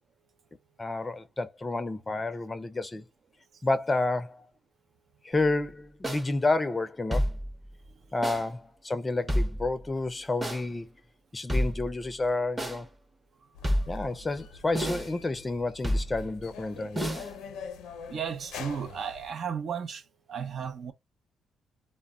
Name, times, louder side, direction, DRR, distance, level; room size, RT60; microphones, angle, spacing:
voice 1, 0.8-3.1 3.6-4.5 5.2-7.4 8.1-10.9 11.3-12.9 13.9-17.1, left 2 dB, 20° left, 0.4 m, -30 dB
sound 1, 6.0-6.2 7.1-7.5 8.2-8.4 9.3-9.7 10.4-10.6 11.5-11.9 12.6-12.8 13.6-14.1 14.7-15.2 15.8-16.3 17.0-17.3, equal, 15° right, 0.7 m, -29 dB
sound 2, 13.5-19.3, left 6 dB, 85° left, 0.5 m, -44 dB
voice 2, 18.1-20.0 20.3-20.9, right 7 dB, 55° right, 0.4 m, -34 dB
2.1 x 2.1 x 3.5 m
cardioid pair, 90°, 0 cm